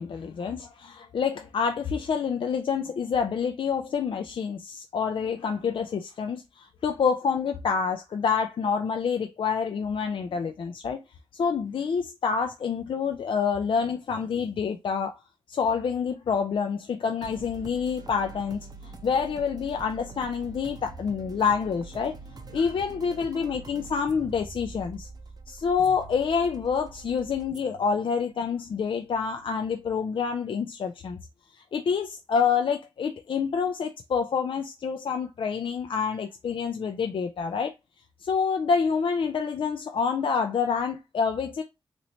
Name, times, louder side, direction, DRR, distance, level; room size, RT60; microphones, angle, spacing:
voice 1, 0.0-11.0 11.3-15.2 15.5-22.2 22.5-25.1 25.5-31.2 31.5-37.7 38.2-41.6, left 6 dB, 60° left, 0.4 m, -27 dB
sound 1, 17.2-30.6, right 3 dB, 45° right, 0.6 m, -45 dB
3.0 x 3.0 x 2.7 m
cardioid pair, 60°, 10 cm